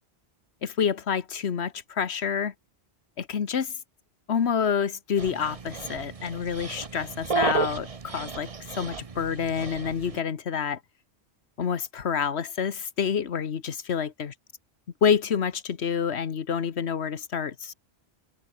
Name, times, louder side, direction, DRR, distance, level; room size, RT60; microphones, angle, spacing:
voice 1, 0.6-2.5 3.2-3.7 4.3-8.5 8.7-10.8 11.6-14.3 15.0-17.7, left 7 dB, 85° left, 1.4 m, -28 dB
Dog, 5.2-10.2, right 5 dB, 35° right, 1.0 m, -33 dB
omnidirectional pair, 1.1 m